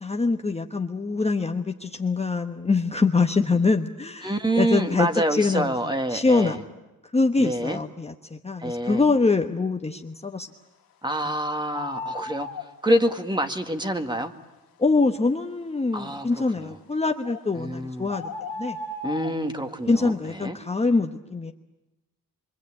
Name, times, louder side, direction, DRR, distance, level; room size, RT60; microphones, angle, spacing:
voice 1, 0.0-6.6 7.1-10.5 14.8-18.3 18.6-18.8 19.9-21.5, left 3 dB, 20° left, 4 dB, 1.1 m, -24 dB
voice 2, 4.2-6.6 7.4-7.8 8.6-9.0 11.0-12.5 12.8-14.3 15.9-16.7 17.6-18.1 19.0-20.6, right 1 dB, 15° right, 6 dB, 1.9 m, -27 dB
sound 1, 11.7-12.7 17.2-17.4 18.1-19.4, left 3 dB, 75° left, 1.8 m, -34 dB
25.5 x 24.0 x 8.6 m, 0.99 s
cardioid pair, 85°, 35 cm